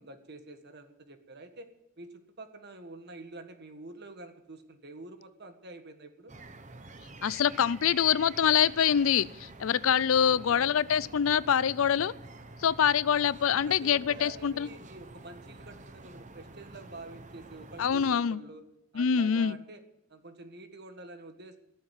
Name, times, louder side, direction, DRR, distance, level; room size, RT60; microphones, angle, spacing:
voice 1, 0.0-1.7 2.0-6.3 10.2-10.7 13.5-18.6 18.9-19.8 20.1-21.6, right 2 dB, 50° right, 7 dB, 1.6 m, -47 dB
sound 1, 6.3-18.2, right 2 dB, 35° right, 1.0 m, -48 dB
voice 2, 7.2-12.1 12.6-14.7 17.8-18.4 19.0-19.6, left 8 dB, 75° left, 20 dB, 0.4 m, -25 dB
16.5 x 7.3 x 9.2 m, 0.91 s
head